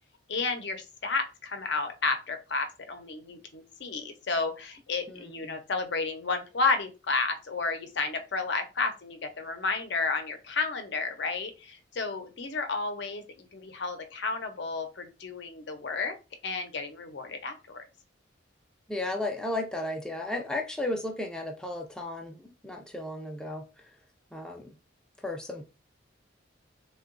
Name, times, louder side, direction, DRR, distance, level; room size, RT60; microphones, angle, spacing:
voice 1, 0.3-16.2 16.4-17.8, left 4 dB, 60° left, 0.6 m, -32 dB
voice 2, 5.1-5.6 18.9-23.6 24.3-24.8 25.2-25.6, left 2 dB, 5° left, 0.4 m, -34 dB
3.7 x 2.2 x 2.5 m
head